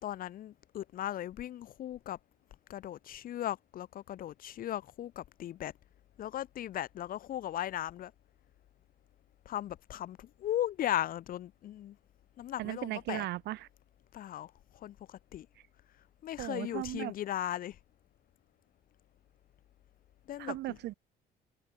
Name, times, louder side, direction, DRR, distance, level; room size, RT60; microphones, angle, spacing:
voice 1, 0.0-2.2 2.7-5.7 6.2-8.1 9.4-12.0 12.4-13.3 14.1-15.5 16.2-17.8 20.3-20.8, left 12 dB, 55° left, 3.5 m, -37 dB
voice 2, 12.6-13.7 16.4-17.1 20.4-20.9, right 16 dB, 75° right, 1.3 m, -37 dB
cardioid pair, 170°, 18 cm